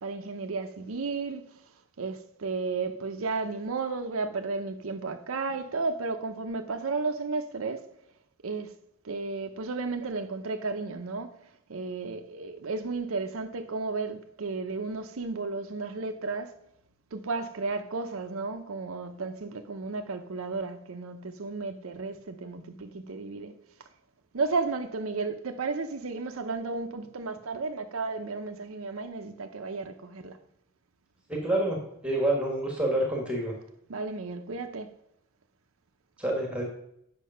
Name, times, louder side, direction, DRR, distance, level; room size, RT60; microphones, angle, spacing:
voice 1, 0.0-1.6 2.0-7.9 8.4-8.7 9.0-11.4 11.7-16.5 17.1-23.5 24.3-30.4 33.9-34.9, right 3 dB, 85° right, 0.7 m, -33 dB
voice 2, 31.3-31.8 32.0-33.5 36.2-36.6, right 1 dB, 5° right, 1.6 m, -27 dB
8.4 x 6.0 x 5.6 m
head